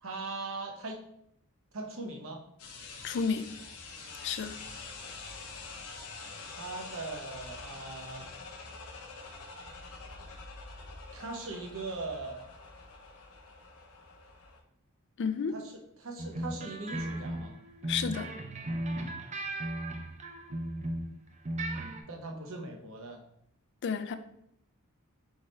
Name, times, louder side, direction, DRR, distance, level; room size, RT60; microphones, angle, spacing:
voice 1, 0.0-1.0 1.7-2.4 6.5-8.3 11.1-12.4 15.5-17.5 22.1-23.2, right 3 dB, 60° right, 1 dB, 0.8 m, -40 dB
sound 1, 2.6-14.6, left 3 dB, 85° left, 0.7 m, -46 dB
voice 2, 3.0-3.5 4.2-4.6 15.2-15.6 17.9-18.3 23.8-24.1, left 6 dB, 55° left, 10 dB, 0.4 m, -31 dB
sound 2, 16.2-21.1 21.5-22.0, right 1 dB, 30° right, 0.5 m, -36 dB
4.0 x 3.6 x 3.1 m, 0.74 s
head